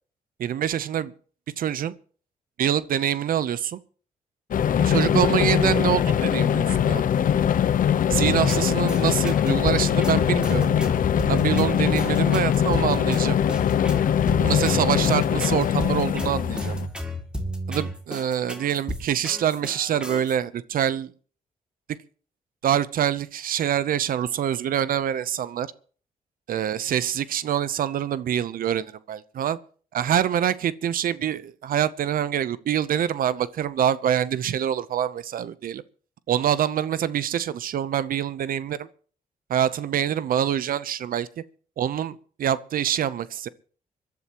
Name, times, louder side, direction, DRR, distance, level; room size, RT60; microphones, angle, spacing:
voice 1, 0.4-1.1 1.6-1.9 2.6-3.8 4.8-7.0 8.1-10.7 11.3-13.4 14.4-16.7 17.7-21.1 22.6-25.7 26.5-29.6 29.9-35.8 36.3-38.9 39.5-41.3 41.8-43.5, right 10 dB, 70° right, 0.8 m, -25 dB
sound 1, 4.5-16.9, left 9 dB, 65° left, 0.8 m, -22 dB
sound 2, 8.1-20.4, equal, 5° right, 2.6 m, -33 dB
25.5 x 12.0 x 3.0 m
cardioid pair, 95°, 15 cm